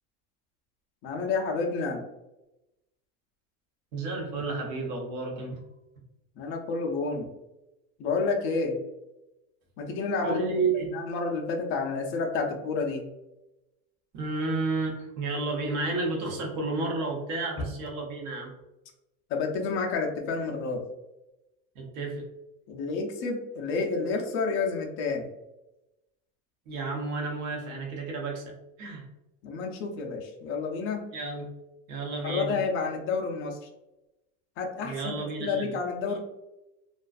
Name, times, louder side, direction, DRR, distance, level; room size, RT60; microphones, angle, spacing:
voice 1, 1.0-2.0 6.4-7.3 8.0-8.8 9.8-10.4 10.9-13.0 19.3-20.8 22.7-25.3 29.4-31.1 32.2-33.7 34.6-36.2, left 4 dB, 35° left, 2 dB, 0.4 m, -30 dB
voice 2, 3.9-5.6 10.2-10.9 14.1-18.5 21.7-22.2 26.7-29.0 31.1-31.4 31.9-32.6 34.8-35.8, right 3 dB, 55° right, 0 dB, 0.8 m, -31 dB
2.4 x 2.3 x 2.3 m, 0.95 s
supercardioid pair, 150°, 38 cm